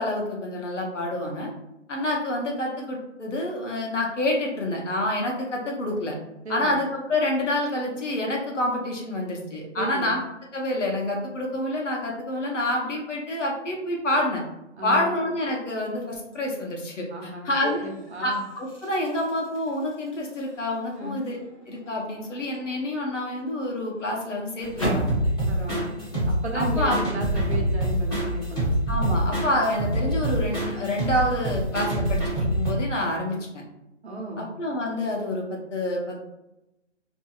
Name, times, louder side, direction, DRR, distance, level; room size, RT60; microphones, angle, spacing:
voice 1, 0.0-1.5 1.9-6.2 6.5-10.2 10.5-14.4 14.8-17.8 18.2-21.4 21.7-25.1 26.5-27.0 28.9-33.6 34.4-36.2, left 1 dB, 75° left, -1 dB, 0.9 m, -27 dB
voice 2, 6.4-6.8 9.8-10.2 14.8-15.1 17.1-18.4 21.0-21.2 25.5-26.0 26.3-28.7 34.0-34.5, right 1 dB, 60° right, 0 dB, 0.8 m, -34 dB
sound 1, 16.3-16.7 17.2-25.2, right 1 dB, 30° left, 0.6 m, -37 dB
sound 2, 24.6-32.7, right 1 dB, 5° left, 1.3 m, -26 dB
2.7 x 2.6 x 2.3 m, 0.90 s
figure-of-eight pair, 165°, 37 cm